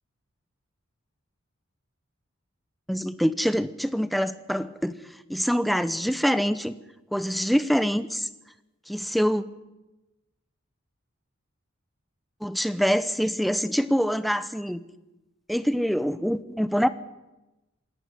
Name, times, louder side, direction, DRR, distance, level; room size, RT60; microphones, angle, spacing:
voice 1, 2.9-4.9 5.3-6.7 7.1-8.3 8.9-9.4 12.4-14.8 15.5-16.9, equal, ahead, 13 dB, 0.8 m, -25 dB
27.0 x 11.0 x 9.8 m, 1.0 s
head